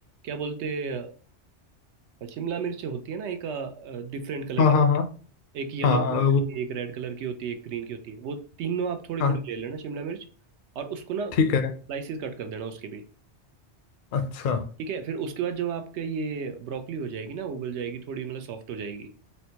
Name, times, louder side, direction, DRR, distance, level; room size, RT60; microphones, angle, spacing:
voice 1, 0.2-1.1 2.2-4.7 5.5-6.2 6.5-10.2 10.8-11.4 11.9-13.0 14.8-19.1, right 6 dB, 75° right, 0.8 m, -33 dB
voice 2, 4.6-5.0 5.8-6.4 9.2-9.3 11.4-11.7 14.1-14.6, left 5 dB, 60° left, 0.6 m, -21 dB
4.3 x 2.1 x 2.8 m
omnidirectional pair, 1.2 m